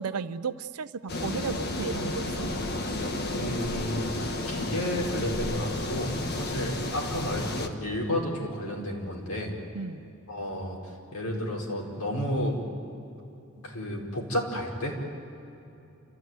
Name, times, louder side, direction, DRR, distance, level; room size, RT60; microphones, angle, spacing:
voice 1, 0.0-2.5 9.7-10.1, right 5 dB, 85° right, 14 dB, 0.6 m, -34 dB
sound 1, 1.1-7.7, left 2 dB, 45° left, 1.5 m, -32 dB
voice 2, 3.3-9.5 10.3-10.8 11.1-12.6 13.6-15.0, equal, 85° left, -2 dB, 4.9 m, -31 dB
29.5 x 14.5 x 9.4 m, 2.8 s
head